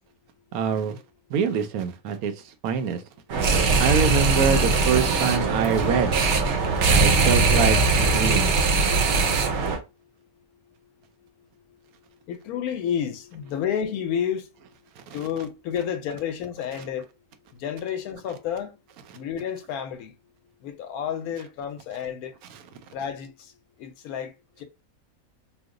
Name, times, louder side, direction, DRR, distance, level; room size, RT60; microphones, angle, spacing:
voice 1, 0.5-1.0 1.3-3.0 3.8-6.2 6.9-8.5 15.0-15.2 19.1-19.2 22.5-22.6, right 6 dB, 85° right, 1.1 m, -25 dB
sound 1, 3.3-9.8, right 3 dB, 60° right, 0.8 m, -21 dB
voice 2, 12.3-14.5 15.1-17.1 17.5-18.8 19.1-20.1 20.6-22.3 22.9-23.5 23.8-24.3 24.6-24.7, left 8 dB, 90° left, 1.1 m, -30 dB
3.0 x 2.1 x 3.6 m
omnidirectional pair, 1.5 m